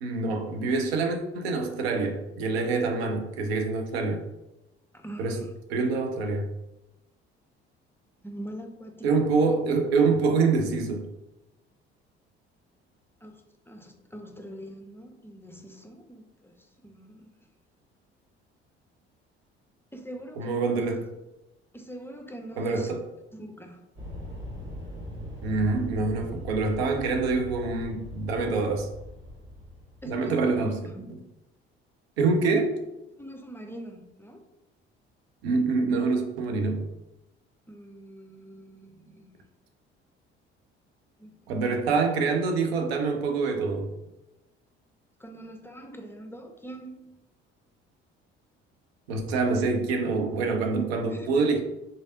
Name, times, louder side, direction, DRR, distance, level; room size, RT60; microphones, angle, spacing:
voice 1, 0.0-4.2 5.2-6.5 9.0-11.1 20.4-21.1 22.6-23.0 25.4-28.9 30.1-31.2 32.2-32.8 35.4-36.9 41.5-43.9 49.1-51.6, right 4 dB, 75° right, 5 dB, 0.6 m, -26 dB
voice 2, 4.9-5.5 8.2-9.1 13.2-13.4 13.7-16.5 16.8-17.3 19.9-20.9 21.7-22.9 23.3-23.8 30.0-30.4 30.9-31.1 33.2-34.4 37.7-39.3 41.2-41.3 45.2-47.1 50.7-51.3, right 1 dB, 5° left, 4 dB, 0.5 m, -42 dB
sound 1, 24.0-30.4, left 1 dB, 40° right, 1.4 m, -41 dB
3.9 x 3.2 x 2.7 m, 0.93 s
figure-of-eight pair, 55°, 31 cm